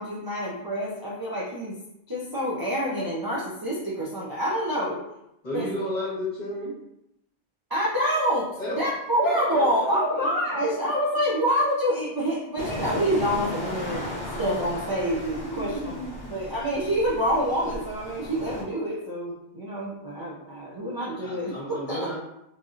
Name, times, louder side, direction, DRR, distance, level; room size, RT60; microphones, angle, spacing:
voice 1, 0.0-1.8 2.1-5.0 5.5-5.7 7.7-14.1 14.4-16.0 16.3-22.1, equal, 35° right, -7 dB, 0.4 m, -27 dB
voice 2, 5.4-6.7 8.6-8.8 9.2-10.6 15.1-16.6 21.2-22.2, equal, 40° left, -7 dB, 1.2 m, -33 dB
sound 1, 12.6-18.6, left 1 dB, 25° left, 0.6 m, -35 dB
3.2 x 2.7 x 2.4 m, 0.83 s
omnidirectional pair, 1.2 m